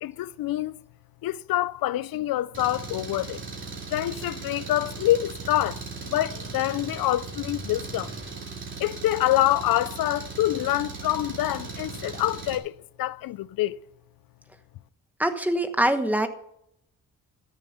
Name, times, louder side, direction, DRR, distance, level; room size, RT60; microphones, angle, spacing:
voice 1, 0.0-0.7 1.2-3.4 3.9-8.1 8.8-12.7 13.0-13.8, left 14 dB, 85° left, 0.5 m, -26 dB
Engine, 2.5-12.6, right 4 dB, 35° right, 2.6 m, -38 dB
voice 2, 15.2-16.3, right 1 dB, 5° right, 1.0 m, -23 dB
13.5 x 7.0 x 6.9 m
wide cardioid pair, 140°, 34 cm